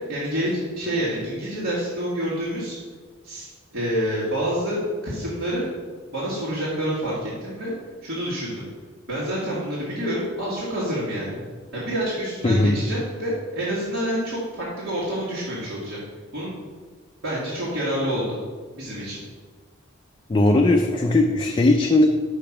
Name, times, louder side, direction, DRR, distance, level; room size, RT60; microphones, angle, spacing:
voice 1, 0.1-2.8 3.2-5.6 6.1-7.7 8.0-8.7 9.1-11.4 11.7-16.0 16.3-16.5 17.2-18.4 18.7-19.2, equal, 65° right, -8 dB, 1.9 m, -27 dB
voice 2, 12.4-12.8 20.3-22.1, left 2 dB, 25° left, 2 dB, 0.4 m, -18 dB
5.8 x 5.2 x 5.9 m, 1.5 s
head